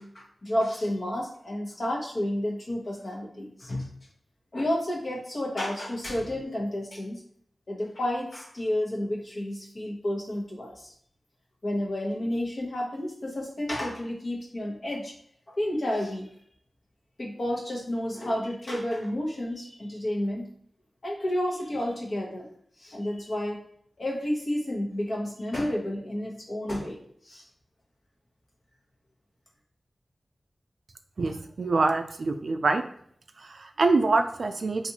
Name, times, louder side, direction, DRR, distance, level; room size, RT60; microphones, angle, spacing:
voice 1, 0.0-3.9 4.5-7.2 7.7-10.9 11.6-15.1 15.5-16.3 17.2-20.5 21.0-22.5 22.8-23.6 24.0-27.0 27.2-27.4, left 1 dB, 50° left, -1 dB, 1.0 m, -31 dB
voice 2, 31.2-32.8 33.4-34.9, right 3 dB, 70° right, 7 dB, 0.3 m, -25 dB
4.0 x 2.5 x 2.8 m, 0.63 s
wide cardioid pair, 100°, 0 cm